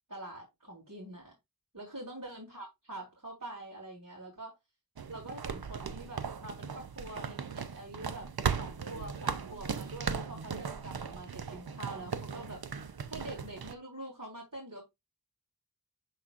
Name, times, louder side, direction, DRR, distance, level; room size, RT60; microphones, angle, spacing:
voice 1, 0.1-1.3 1.7-4.5 5.1-8.3 8.6-12.6 13.1-14.8, right 1 dB, 50° right, 3.4 m, -45 dB
sound 1, 5.0-13.7, right 6 dB, 80° right, 0.7 m, -37 dB
12.0 x 4.2 x 2.5 m
wide cardioid pair, 45°, 36 cm